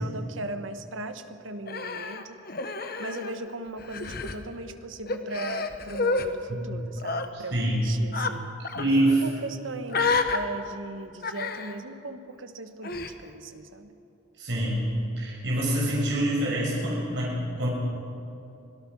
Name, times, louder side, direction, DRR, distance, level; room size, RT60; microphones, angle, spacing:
voice 1, 0.0-2.4 3.0-8.5 9.1-13.9, right 2 dB, 85° right, 8 dB, 1.3 m, -38 dB
Human voice, 1.7-3.5 3.8-4.4 5.1-6.3 7.0-7.3 8.1-8.3 8.6-8.9 9.9-10.4 11.2-11.8 12.8-13.1, left 4 dB, 50° left, 1.2 m, -29 dB
voice 2, 7.3-7.9 8.7-9.2 14.4-14.8 15.2-17.7, right 1 dB, 65° right, -4 dB, 6.5 m, -26 dB
25.0 x 17.5 x 6.3 m, 2.8 s
head